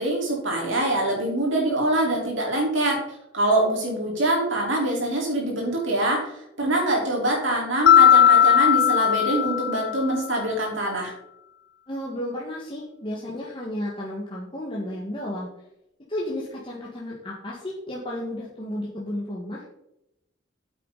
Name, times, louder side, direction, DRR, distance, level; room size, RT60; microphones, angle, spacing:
voice 1, 0.0-11.1, right 1 dB, 70° right, -1 dB, 4.2 m, -24 dB
Mallet percussion, 7.9-10.2, left 9 dB, 55° left, 0.3 m, -17 dB
voice 2, 11.9-15.5 16.1-19.7, left 1 dB, 25° left, -5 dB, 1.7 m, -33 dB
9.3 x 8.2 x 4.1 m, 0.83 s
head